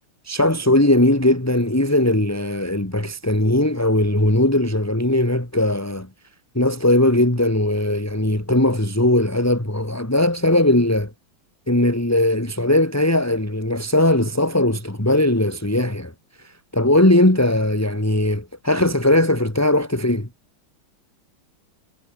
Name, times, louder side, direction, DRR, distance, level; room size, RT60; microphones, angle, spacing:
voice 1, 0.2-6.1 6.5-11.1 11.7-16.1 16.4-20.3, left 1 dB, 5° left, 2.9 m, -19 dB
omnidirectional pair, 2.4 m